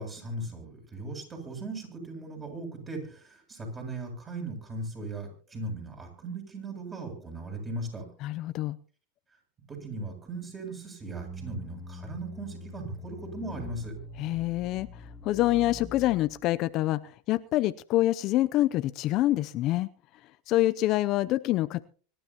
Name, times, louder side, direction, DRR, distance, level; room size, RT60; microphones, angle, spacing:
voice 1, 0.0-8.0 9.7-13.9, right 2 dB, 20° right, 7.8 m, -38 dB
voice 2, 8.2-8.8 14.2-14.9 15.2-17.0 17.3-19.9 20.5-21.8, left 15 dB, 50° left, 0.6 m, -26 dB
sound 1, 11.0-16.4, left 1 dB, ahead, 2.3 m, -44 dB
25.0 x 12.5 x 3.0 m
supercardioid pair, 115°, 0 cm